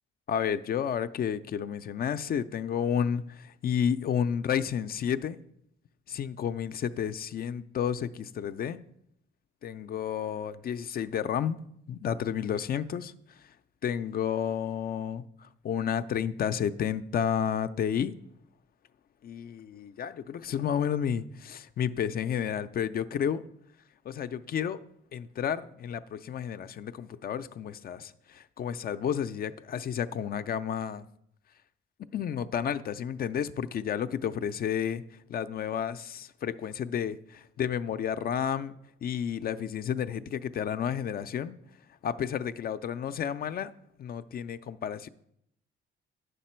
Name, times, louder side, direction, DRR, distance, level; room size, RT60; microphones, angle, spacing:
voice 1, 0.3-5.4 6.1-8.8 9.6-11.6 11.9-13.5 13.8-18.1 19.2-23.4 24.0-24.8 25.1-31.1 32.1-41.6 42.0-43.7 44.0-45.1, left 8 dB, 50° left, 0.4 m, -31 dB
9.2 x 6.7 x 4.4 m
cardioid pair, 90°, 20 cm